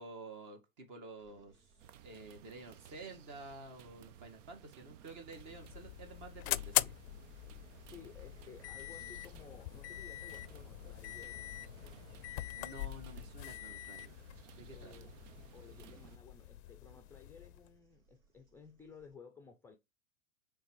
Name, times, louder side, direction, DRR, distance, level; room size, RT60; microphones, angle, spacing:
voice 1, 0.0-1.7 2.0-7.0 12.5-14.2 14.5-14.9, right 2 dB, 40° right, 2.2 m, -50 dB
sound 1, 1.2-19.2, right 2 dB, 85° right, 2.4 m, -68 dB
sound 2, 1.8-16.2, right 10 dB, 65° right, 0.7 m, -58 dB
sound 3, 5.3-17.7, left 17 dB, 55° left, 0.5 m, -42 dB
voice 2, 7.9-11.4 14.7-15.2 15.5-19.8, left 5 dB, 5° left, 0.5 m, -56 dB
5.5 x 3.8 x 4.7 m
hypercardioid pair, 115°, 41 cm